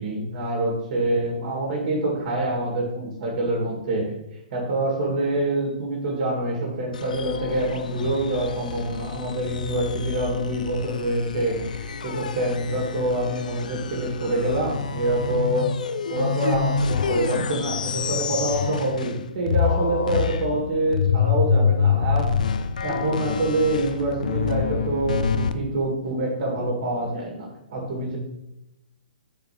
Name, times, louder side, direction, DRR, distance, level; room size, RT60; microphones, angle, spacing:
voice 1, 0.0-4.1 4.5-15.7 16.1-22.3 22.8-28.2, right 1 dB, 50° right, -2 dB, 1.9 m, -26 dB
sound 1, 6.9-19.2 19.5-25.5, left 6 dB, 65° left, 0.5 m, -27 dB
5.3 x 4.6 x 4.8 m, 0.87 s
figure-of-eight pair, 120°, 5 cm